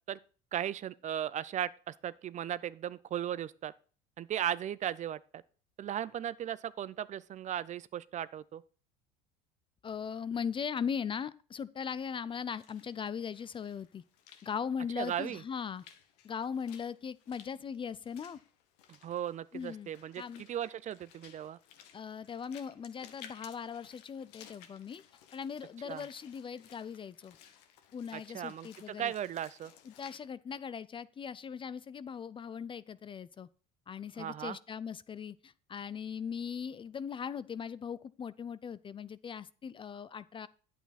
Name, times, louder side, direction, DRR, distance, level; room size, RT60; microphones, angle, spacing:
voice 1, 0.5-3.7 4.2-5.4 5.8-8.6 15.0-15.4 18.9-20.2 20.5-21.6 25.8-26.0 28.1-29.7 34.2-34.6, right 10 dB, 35° right, 0.4 m, -37 dB
voice 2, 9.8-14.0 14.4-15.8 16.2-18.4 19.5-19.9 20.2-20.4 21.9-25.0 25.3-27.4 27.9-29.1 29.8-33.5 33.9-40.5, left 7 dB, 25° left, 0.4 m, -39 dB
Walk footsteps / Splash splatter, 12.3-30.2, left 9 dB, 80° left, 1.3 m, -58 dB
9.1 x 8.2 x 4.2 m
supercardioid pair, 95°, 20 cm